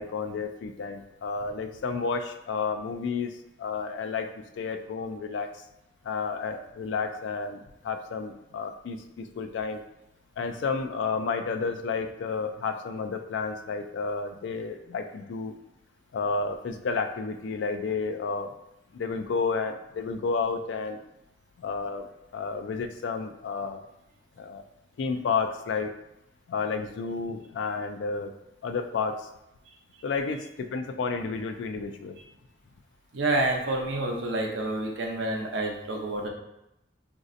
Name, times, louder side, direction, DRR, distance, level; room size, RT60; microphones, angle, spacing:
voice 1, 0.0-3.3 3.6-4.3 4.6-5.5 6.0-9.8 10.4-15.5 16.1-18.5 18.9-21.0 21.6-22.1 22.3-23.8 24.4-24.6 25.0-25.9 26.5-28.3 28.6-29.3 30.0-32.2, left 4 dB, 75° left, 7 dB, 0.3 m, -31 dB
voice 2, 33.1-36.3, right 2 dB, 80° right, 0 dB, 0.6 m, -28 dB
4.0 x 2.6 x 2.5 m, 0.85 s
head